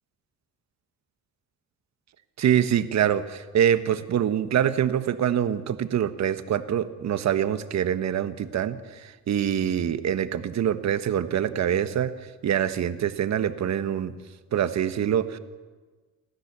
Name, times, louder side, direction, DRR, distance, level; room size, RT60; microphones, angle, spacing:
voice 1, 2.4-12.1 12.4-14.1 14.5-15.4, right 9 dB, 65° right, 10 dB, 1.4 m, -25 dB
28.5 x 13.5 x 6.9 m, 1.4 s
cardioid pair, 90°, 30 cm